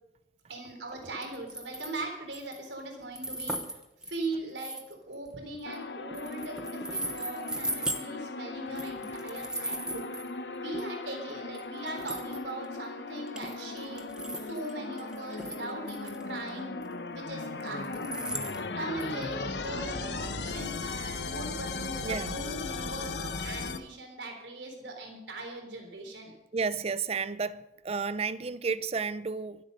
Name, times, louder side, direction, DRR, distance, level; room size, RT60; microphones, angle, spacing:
voice 1, 0.5-3.6 4.1-4.8 5.1-10.0 10.6-14.1 14.5-16.7 17.1-18.3 18.8-26.3, right 2 dB, 85° right, 3.8 m, -40 dB
sound 1, 1.2-2.0 2.3-2.7 3.2-5.8 6.1-8.0 8.7-10.3 10.7-10.8 11.5-11.6 11.9-12.7 13.3-14.7 15.0-16.2 16.5-16.6 16.8-16.9 17.7-19.4 19.6-19.7 20.2-20.3, right 1 dB, 5° right, 1.1 m, -37 dB
sound 2, 5.7-23.8, left 3 dB, 70° left, 1.1 m, -37 dB
voice 2, 22.0-22.3 26.5-29.6, right 5 dB, 35° right, 0.5 m, -32 dB
23.5 x 8.2 x 5.3 m
head